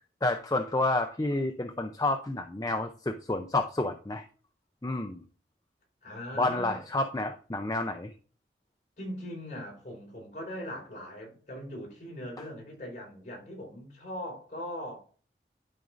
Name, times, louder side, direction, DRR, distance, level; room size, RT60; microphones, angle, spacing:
voice 1, 0.2-4.2 4.8-5.2 6.4-8.1, left 2 dB, 20° left, 0.5 m, -29 dB
voice 2, 6.0-7.0 9.0-15.0, equal, 45° left, 4.1 m, -40 dB
12.5 x 5.0 x 2.5 m
head